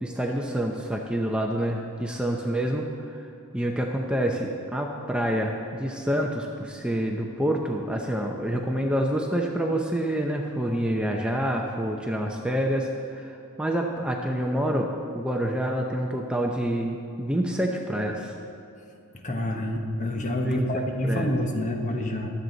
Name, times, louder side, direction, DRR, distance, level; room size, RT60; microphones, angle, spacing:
voice 1, 0.0-3.2 3.5-18.3 20.4-21.3, equal, 5° right, 1 dB, 0.7 m, -27 dB
voice 2, 19.2-22.3, left 1 dB, 35° left, 3 dB, 1.3 m, -27 dB
23.0 x 8.0 x 4.0 m, 2.8 s
head